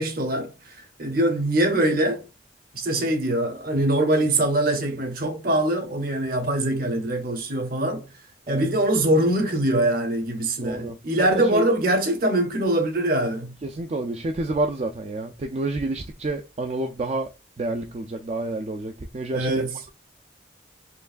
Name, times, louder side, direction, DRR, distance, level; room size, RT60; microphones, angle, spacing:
voice 1, 0.0-2.3 2.7-8.1 8.5-13.5 19.3-19.7, right 1 dB, 50° right, 0.9 m, -23 dB
voice 2, 10.6-11.7 13.6-17.3 17.6-19.6, right 2 dB, 35° right, 0.4 m, -29 dB
4.5 x 3.1 x 2.5 m
head